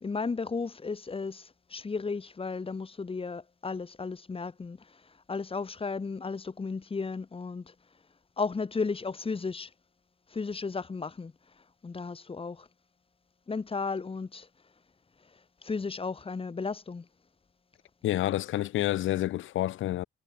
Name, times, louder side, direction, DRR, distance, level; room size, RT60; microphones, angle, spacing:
voice 1, 0.0-7.7 8.4-9.7 10.3-12.7 13.5-14.5 15.3-17.1, left 4 dB, 30° left, 2.2 m, -34 dB
voice 2, 18.0-20.0, left 14 dB, 80° left, 1.2 m, -28 dB
cardioid pair, 90°, 20 cm